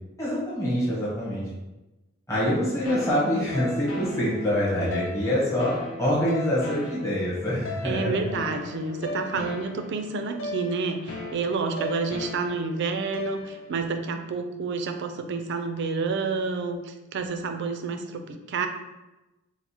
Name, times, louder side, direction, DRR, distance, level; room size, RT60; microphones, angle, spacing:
voice 1, 0.2-1.5 2.3-8.3, equal, 15° left, -9 dB, 1.0 m, -25 dB
sound 1, 2.8-13.8, left 2 dB, 75° left, 0.5 m, -37 dB
voice 2, 7.8-18.7, right 4 dB, 60° right, 7 dB, 0.3 m, -29 dB
4.6 x 2.0 x 2.7 m, 1.0 s
head